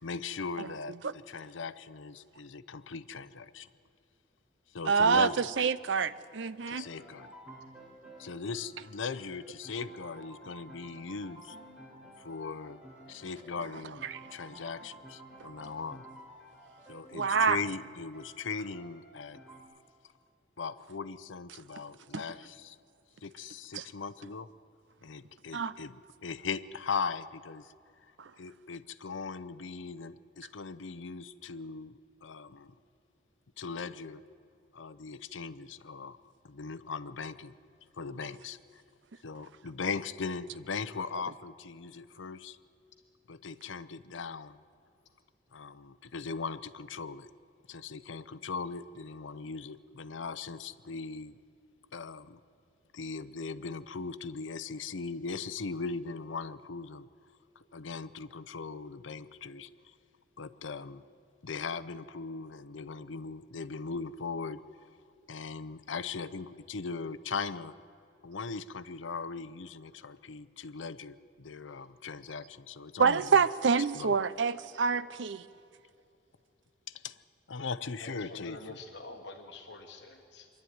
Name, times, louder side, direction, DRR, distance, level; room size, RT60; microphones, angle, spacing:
voice 1, 0.0-3.7 4.7-5.5 6.6-7.3 8.2-11.6 12.2-12.8 13.1-16.1 16.9-19.4 20.6-22.8 23.2-24.5 25.0-27.7 28.0-28.1 28.4-32.7 33.6-34.2 34.7-36.2 36.4-37.5 38.0-38.8 39.2-42.6 43.3-44.6 45.5-47.3 47.7-51.4 51.9-52.4 52.9-57.1 57.6-59.9 60.4-61.0 61.4-64.6 65.3-67.8 68.2-73.4 73.9-74.1 76.9-77.2 77.5-78.8, left 4 dB, 80° left, 0.7 m, -39 dB
voice 2, 4.9-6.9 14.1-14.2 17.1-17.6 22.1-22.2 23.7-23.8 25.5-25.7 28.2-28.3 73.0-75.4, right 5 dB, 75° right, 0.6 m, -27 dB
sound 1, 6.7-19.6, right 1 dB, 5° right, 3.8 m, -52 dB
voice 3, 78.0-80.5, left 3 dB, 65° left, 1.3 m, -47 dB
25.0 x 11.5 x 9.3 m
head